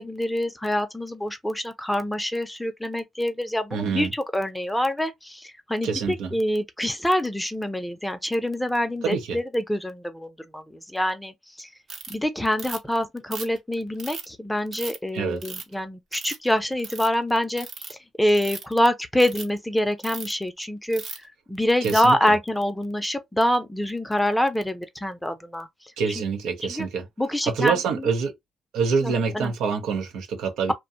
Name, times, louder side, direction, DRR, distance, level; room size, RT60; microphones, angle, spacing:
voice 1, 0.0-11.7 12.1-21.0 21.5-25.7 26.7-26.9 27.2-28.1 29.0-29.5, left 1 dB, 5° left, 0.6 m, -26 dB
voice 2, 3.7-4.1 5.8-6.4 9.0-9.4 15.1-15.4 21.8-22.3 26.0-27.1 27.4-28.3 28.7-30.7, right 5 dB, 85° right, 0.7 m, -26 dB
Ratchet pawl, 11.9-12.1 12.6-12.9 13.3-14.3 14.7-15.0 15.4-15.7 16.1-16.5 16.8-17.1 17.6-17.9 18.3-18.7 19.2-19.4 20.0-20.3 20.9-21.2 21.8-22.1, right 4 dB, 55° right, 0.9 m, -36 dB
2.6 x 2.2 x 2.5 m
cardioid pair, 90°, 0 cm